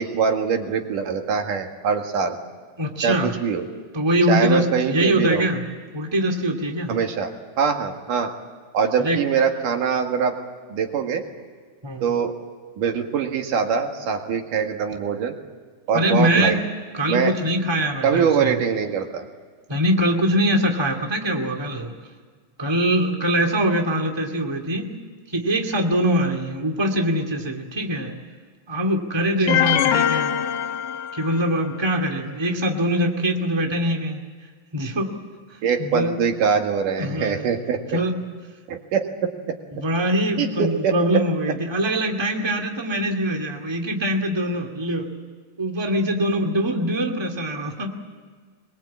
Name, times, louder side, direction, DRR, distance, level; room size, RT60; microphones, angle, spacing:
voice 1, 0.0-2.4 3.0-3.7 4.3-5.5 6.9-8.3 8.7-10.3 10.7-11.2 12.0-12.3 12.8-15.3 15.9-16.6 17.1-17.3 18.0-19.2 29.5-29.6 35.6-38.0 38.7-39.3 40.4-41.0, right 6 dB, 85° right, 4 dB, 3.4 m, -23 dB
voice 2, 2.8-3.3 3.9-5.6 5.9-6.9 9.0-9.2 11.8-12.1 15.9-16.6 16.9-18.5 19.7-21.9 22.6-24.9 25.3-28.1 28.7-30.3 31.1-34.2 34.7-35.1 35.8-36.1 37.0-37.4 37.9-38.1 39.7-45.1 45.6-47.9, equal, 10° right, 3 dB, 1.8 m, -23 dB
sound 1, 29.5-31.6, left 10 dB, 80° left, 2.2 m, -22 dB
23.5 x 22.0 x 8.6 m, 1.5 s
omnidirectional pair, 3.6 m